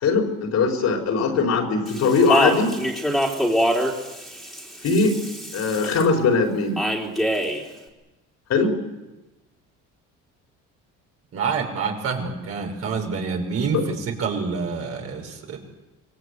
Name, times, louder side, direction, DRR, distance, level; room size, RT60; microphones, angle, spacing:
voice 1, 0.0-2.7 4.8-5.2 5.5-6.8 8.5-8.7 13.7-13.8, left 4 dB, 55° left, 2 dB, 4.7 m, -20 dB
Speech, 1.9-6.0 6.8-7.6, equal, ahead, 3.9 m, -24 dB
voice 2, 11.3-15.6, right 5 dB, 45° right, 2 dB, 5.7 m, -27 dB
26.5 x 22.0 x 8.3 m, 1.1 s
cardioid pair, 150°, 32 cm